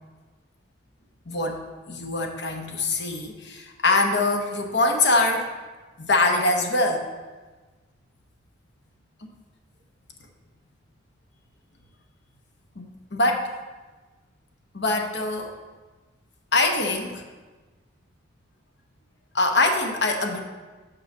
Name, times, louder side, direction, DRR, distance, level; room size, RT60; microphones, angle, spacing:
voice 1, 1.3-1.6 1.9-5.5 6.0-7.0 9.2-9.3 12.8-13.5 14.7-15.5 16.5-17.2 19.3-20.4, left 2 dB, 60° left, 3 dB, 1.0 m, -23 dB
6.8 x 4.8 x 6.0 m, 1.3 s
head